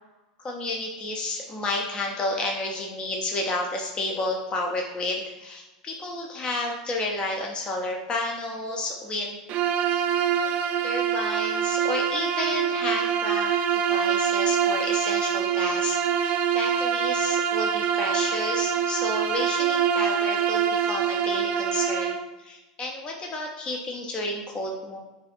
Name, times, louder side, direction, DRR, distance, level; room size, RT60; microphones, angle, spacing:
voice 1, 0.4-9.4 9.9-10.1 10.8-25.0, left 2 dB, 25° left, 0 dB, 0.6 m, -31 dB
Bowed string instrument, 9.5-22.3, right 8 dB, 45° right, 0.4 m, -25 dB
7.4 x 2.5 x 2.5 m, 1.1 s
hypercardioid pair, 100°, 4 cm